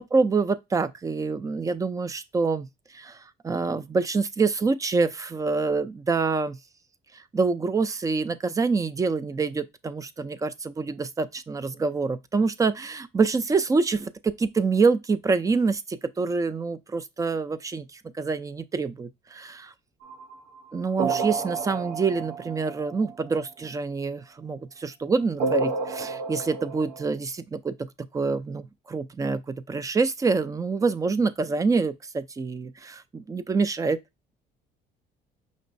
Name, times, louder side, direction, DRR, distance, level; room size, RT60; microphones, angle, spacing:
voice 1, 0.0-2.7 2.9-6.6 7.1-19.7 20.7-34.0, right 4 dB, 20° right, 0.4 m, -26 dB
sound 1, 20.0-23.3 25.4-27.1, right 4 dB, 85° right, 0.7 m, -30 dB
5.3 x 2.9 x 2.6 m
cardioid pair, 110°, 17 cm